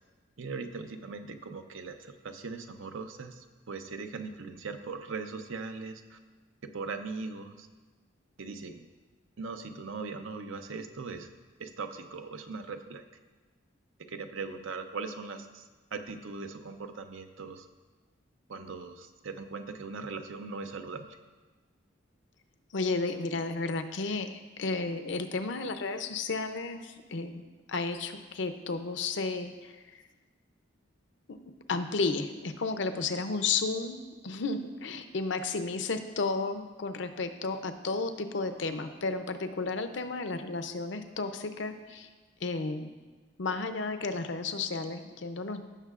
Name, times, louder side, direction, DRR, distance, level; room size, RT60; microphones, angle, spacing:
voice 1, 0.4-6.2 6.7-7.7 8.4-8.8 9.4-11.3 11.6-13.0 14.1-15.6 15.9-17.7 18.5-21.2, right 4 dB, 75° right, 7 dB, 0.6 m, -40 dB
voice 2, 22.7-27.4 27.7-30.0 31.3-31.4 31.7-34.0 34.2-42.1 42.4-42.9 43.4-45.6, left 3 dB, 65° left, 8 dB, 0.6 m, -33 dB
15.5 x 6.5 x 2.4 m, 1.3 s
head